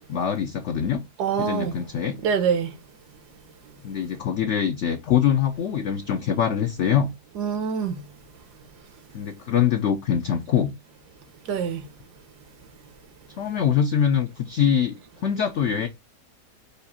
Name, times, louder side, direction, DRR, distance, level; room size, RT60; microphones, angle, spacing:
voice 1, 0.1-1.0 1.4-2.2 3.8-7.1 9.1-10.7 13.4-14.9 15.2-15.9, left 8 dB, 80° left, 0.6 m, -23 dB
voice 2, 1.2-1.7 2.2-2.7 7.4-8.0 11.5-11.8, right 7 dB, 75° right, 1.3 m, -25 dB
5.2 x 2.4 x 4.1 m
omnidirectional pair, 1.8 m